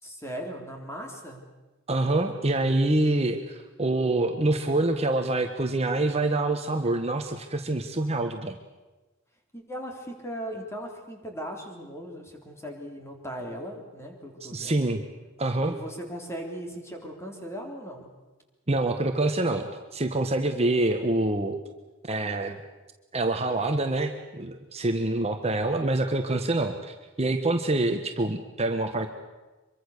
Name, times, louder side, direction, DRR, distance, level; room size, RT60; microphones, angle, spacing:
voice 1, 0.0-1.4 9.5-14.8 15.6-18.1, equal, 15° left, 2 dB, 3.8 m, -38 dB
voice 2, 1.9-8.6 14.5-15.0 15.4-15.8 18.7-21.6 22.1-22.6 23.1-29.1, right 2 dB, 30° right, 5 dB, 1.4 m, -26 dB
25.0 x 23.0 x 6.7 m, 1.1 s
head